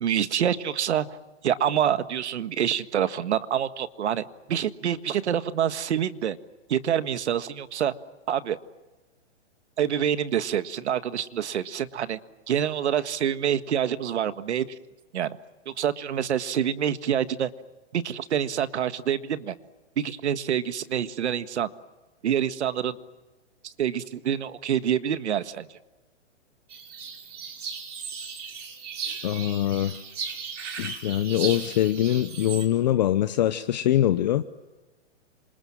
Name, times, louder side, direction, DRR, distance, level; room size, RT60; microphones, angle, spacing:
voice 1, 0.0-1.2 1.4-6.4 6.7-7.9 8.3-8.6 9.8-12.2 12.5-14.7 15.1-15.4 15.7-17.5 17.9-19.6 20.0-21.7 22.2-23.0 23.6-25.7, right 9 dB, 70° right, 12 dB, 1.7 m, -26 dB
sound 1, 26.7-32.7, right 6 dB, 85° right, 6.1 m, -36 dB
voice 2, 29.2-29.9 30.8-34.4, left 12 dB, 40° left, 11 dB, 0.9 m, -23 dB
27.5 x 26.5 x 7.5 m, 1.2 s
hypercardioid pair, 165°, 36 cm